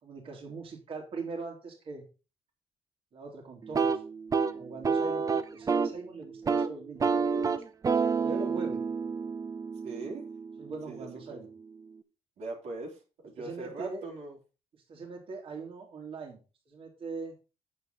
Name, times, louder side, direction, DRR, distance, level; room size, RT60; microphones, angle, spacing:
voice 1, 0.0-2.0 3.1-4.0 4.5-7.5 8.2-8.8 10.6-11.5 13.4-14.1 14.9-16.4 16.7-17.4, right 4 dB, 55° right, 0 dB, 3.2 m, -41 dB
sound 1, 3.6-6.0 6.3-6.7 7.0-10.9, right 5 dB, 30° right, 1.0 m, -29 dB
voice 2, 9.8-10.2 10.9-11.4 12.4-14.4, right 3 dB, 75° right, 0 dB, 3.5 m, -40 dB
8.9 x 8.1 x 4.0 m, 0.31 s
cardioid pair, 125°, 11 cm